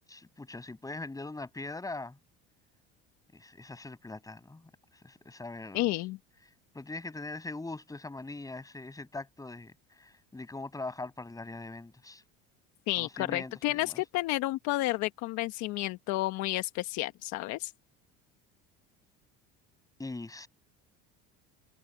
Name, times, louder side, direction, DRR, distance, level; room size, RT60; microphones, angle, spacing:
voice 1, 0.1-2.2 3.3-4.6 5.0-5.9 6.7-12.2 13.0-14.0 20.0-20.5, left 2 dB, 10° left, 7.1 m, -41 dB
voice 2, 5.7-6.2 12.9-17.7, left 18 dB, 65° left, 1.3 m, -31 dB
supercardioid pair, 110°, 30 cm